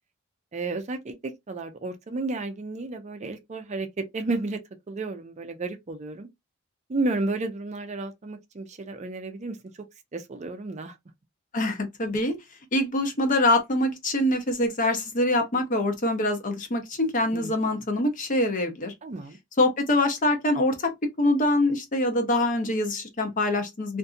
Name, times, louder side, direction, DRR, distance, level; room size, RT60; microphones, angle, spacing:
voice 1, 0.5-4.6 4.9-6.3 6.9-9.8 10.1-11.0 17.3-17.5 19.0-19.4, right 3 dB, 35° right, 0.5 m, -32 dB
voice 2, 11.5-12.4 12.7-18.9 19.6-20.9 21.2-24.0, left 1 dB, 40° left, 0.7 m, -24 dB
2.6 x 2.5 x 2.3 m
head